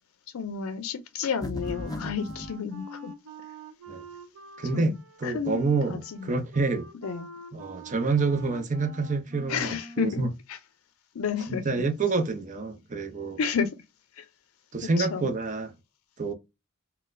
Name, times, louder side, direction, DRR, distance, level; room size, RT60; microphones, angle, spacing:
voice 1, 0.3-3.1 4.7-5.0 5.2-6.3 7.0-7.3 9.5-10.2 10.5-10.6 11.1-11.6 13.4-13.7 14.1-14.3 14.8-15.3, left 6 dB, 80° left, 0.4 m, -31 dB
sound 1, 1.4-2.5, left 1 dB, 15° left, 0.4 m, -36 dB
Wind instrument woodwind instrument, 1.6-10.2, equal, 75° right, 0.8 m, -45 dB
voice 2, 4.6-4.9 5.2-6.9 7.5-10.3 11.5-13.4 14.7-15.7 16.2-16.3, right 3 dB, 35° right, 0.6 m, -27 dB
3.9 x 2.2 x 2.5 m
head